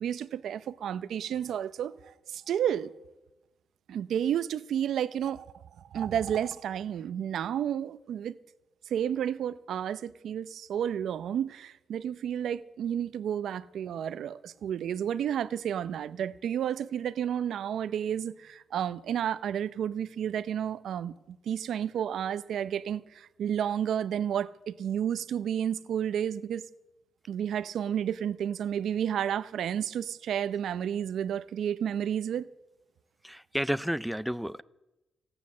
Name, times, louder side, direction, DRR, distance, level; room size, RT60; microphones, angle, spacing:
voice 1, 0.0-2.9 3.9-5.5 5.8-8.4 8.9-26.6 27.3-32.5, right 9 dB, 75° right, 0.6 m, -31 dB
voice 2, 33.2-34.6, equal, 5° right, 0.5 m, -31 dB
16.5 x 9.7 x 7.3 m
cardioid pair, 100°, 0 cm